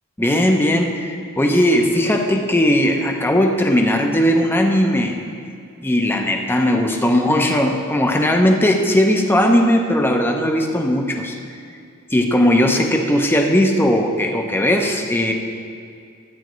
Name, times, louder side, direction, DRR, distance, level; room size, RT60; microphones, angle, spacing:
voice 1, 0.2-5.2 5.8-11.4 12.1-15.3, left 1 dB, 10° left, 2 dB, 0.7 m, -18 dB
13.0 x 8.7 x 3.1 m, 2.3 s
head